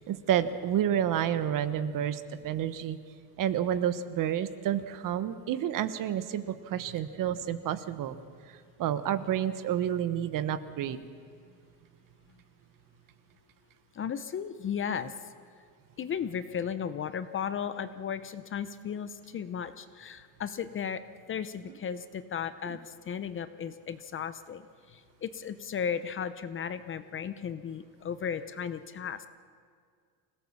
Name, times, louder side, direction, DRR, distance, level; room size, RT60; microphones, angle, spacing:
voice 1, 0.0-3.0 3.4-8.2 8.8-11.0 22.7-22.8, right 10 dB, 45° right, 12 dB, 1.2 m, -30 dB
voice 2, 13.9-15.3 16.0-21.0 21.3-29.3, left 7 dB, 30° left, 12 dB, 0.7 m, -35 dB
25.5 x 16.5 x 7.2 m, 2.1 s
supercardioid pair, 125°, 45 cm